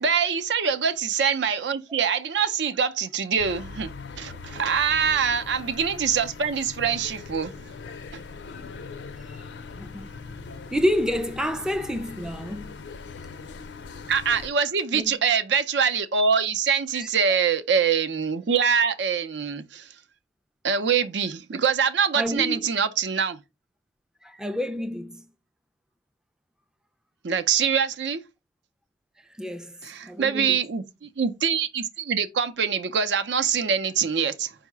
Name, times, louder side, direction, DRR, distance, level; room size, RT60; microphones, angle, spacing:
voice 1, 0.0-3.9 4.2-7.5 8.1-8.2 14.1-19.9 20.6-23.4 27.2-28.2 29.8-34.5, right 6 dB, 85° right, 0.5 m, -24 dB
sound 1, 3.4-14.5, left 4 dB, 90° left, 0.5 m, -40 dB
voice 2, 9.8-10.1 10.7-12.8 14.9-15.2 16.9-17.4 22.2-22.7 24.2-25.3 29.4-29.8 30.0-30.6, equal, 5° right, 0.3 m, -29 dB
4.6 x 2.1 x 4.6 m
head